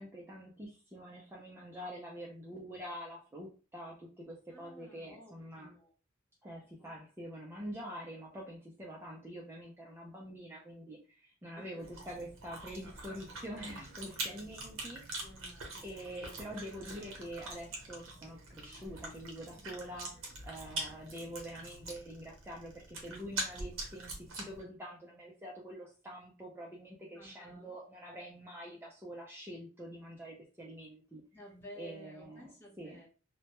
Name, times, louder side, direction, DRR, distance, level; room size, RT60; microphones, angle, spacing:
voice 1, 0.0-5.7 6.4-15.2 15.8-31.2 31.8-32.5 32.8-33.0, equal, 10° right, -3 dB, 0.3 m, -46 dB
voice 2, 4.5-5.9 6.8-7.0 11.6-12.2 15.2-16.3 27.1-27.7 31.3-33.1, equal, 10° left, -5 dB, 0.8 m, -54 dB
Chewing mastication, 11.8-24.6, right 2 dB, 65° right, 0.8 m, -44 dB
2.1 x 2.1 x 2.8 m, 0.35 s
head